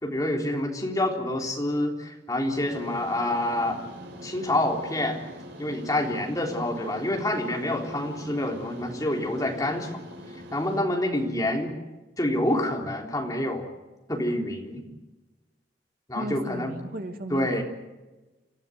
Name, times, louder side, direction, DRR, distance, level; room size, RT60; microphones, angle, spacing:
voice 1, 0.0-3.8 4.2-5.2 5.6-9.9 10.5-11.7 12.2-13.7 14.1-14.8 16.1-16.7 17.3-17.6, left 1 dB, 20° left, 1 dB, 3.7 m, -27 dB
sound 1, 2.5-10.8, equal, 75° right, 4.0 m, -43 dB
voice 2, 16.1-17.6, right 1 dB, 55° right, 5 dB, 2.4 m, -35 dB
29.0 x 15.5 x 7.9 m, 1.1 s
head